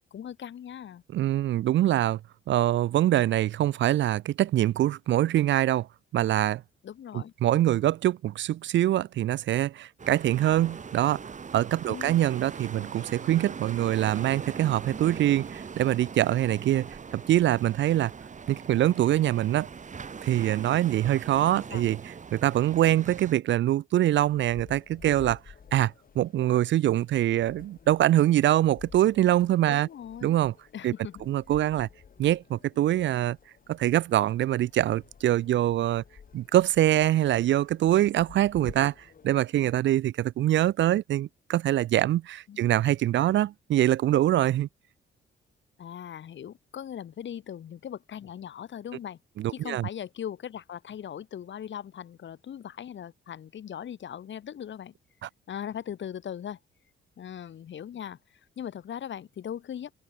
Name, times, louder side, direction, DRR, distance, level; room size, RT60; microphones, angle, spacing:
voice 1, 0.1-1.0 6.8-7.3 11.9-12.2 21.5-21.9 29.7-30.4 30.7-31.3 42.5-42.6 45.8-49.2 49.5-54.9 55.5-56.6 57.2-59.9, left 9 dB, 60° left, 7.0 m, -39 dB
voice 2, 1.1-2.2 2.5-5.9 6.1-6.6 7.1-11.2 11.5-18.1 18.5-19.7 20.2-22.0 22.3-25.4 25.7-29.9 30.2-30.5 30.8-30.9 31.3-31.9 32.2-33.4 33.7-36.0 36.3-38.9 39.2-44.7 49.4-49.9 55.2-55.3, right 13 dB, 60° right, 0.4 m, -24 dB
sound 1, 10.0-23.4, right 5 dB, 35° right, 3.1 m, -41 dB
sound 2, 24.2-39.8, left 6 dB, 45° left, 4.2 m, -52 dB
open air
cardioid pair, 120°, 21 cm